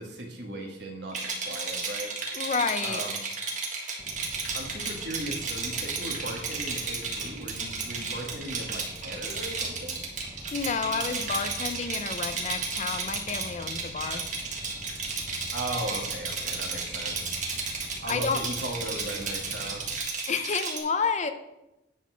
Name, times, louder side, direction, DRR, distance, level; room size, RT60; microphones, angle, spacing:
voice 1, 0.0-2.1 2.8-3.2 4.5-10.0 15.5-17.3 18.0-19.8, right 1 dB, 60° right, 1 dB, 1.6 m, -37 dB
Rattle, 1.1-20.8, right 4 dB, 40° right, 1.7 m, -33 dB
voice 2, 2.3-3.1 10.5-14.2 18.1-18.4 20.3-21.3, left 5 dB, 35° left, 9 dB, 0.5 m, -30 dB
sound 1, 4.0-20.0, equal, 5° right, 0.7 m, -46 dB
10.0 x 4.0 x 6.2 m, 0.92 s
head